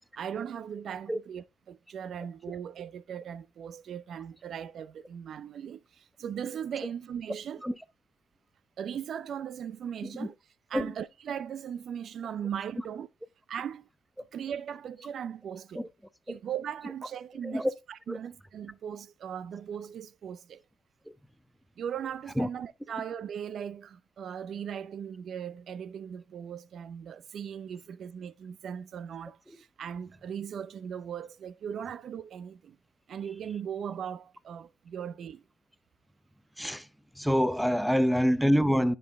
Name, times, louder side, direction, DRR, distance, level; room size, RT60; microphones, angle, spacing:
voice 1, 0.2-7.6 8.8-10.3 10.7-13.1 13.5-13.9 14.3-15.9 16.3-20.6 21.8-32.8 33.1-35.4, right 8 dB, 65° right, 0.6 m, -38 dB
voice 2, 36.6-36.9 37.2-39.0, equal, ahead, 0.7 m, -26 dB
10.0 x 5.5 x 3.5 m
cardioid pair, 90°, 0 cm